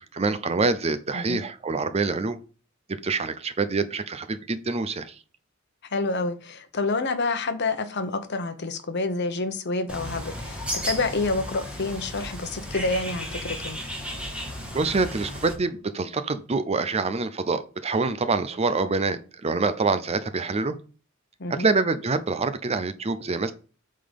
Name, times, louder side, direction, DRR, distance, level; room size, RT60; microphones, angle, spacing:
voice 1, 0.0-2.4 3.0-5.2 14.7-20.8 21.5-23.5, right 3 dB, 30° right, 0.6 m, -26 dB
voice 2, 5.9-13.8 21.4-21.7, left 3 dB, 55° left, 1.0 m, -28 dB
Bird, 9.9-15.5, equal, 5° right, 1.9 m, -34 dB
8.5 x 3.9 x 5.2 m
head